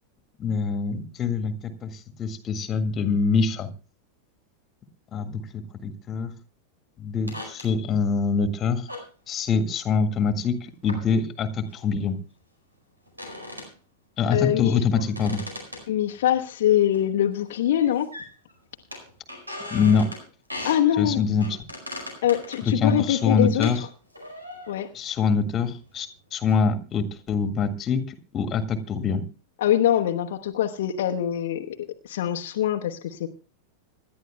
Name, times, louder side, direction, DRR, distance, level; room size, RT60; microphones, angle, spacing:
voice 1, 0.4-3.7 5.1-6.3 7.0-8.9 9.3-10.6 10.8-12.2 14.2-15.4 19.7-20.1 21.0-21.6 22.6-23.8 24.9-28.0 28.3-29.2, left 5 dB, 25° left, 9 dB, 1.7 m, -24 dB
sound 1, 7.3-7.7 8.9-9.1 10.9-11.0 11.7-11.8 13.1-13.7 15.0-16.4 16.9-17.0 17.3-17.5 17.8-18.5 18.9-20.3 20.5-20.9 21.4-23.8 24.1-25.0 25.7-25.9 26.5-26.6, left 1 dB, 85° right, 4.8 m, -38 dB
voice 2, 14.3-14.8 15.9-18.1 20.6-21.2 22.2-23.7 24.7-24.9 29.6-31.8 32.0-33.3, left 11 dB, 55° left, 3 dB, 1.0 m, -23 dB
26.5 x 11.5 x 2.2 m, 0.34 s
figure-of-eight pair, 90°, 0 cm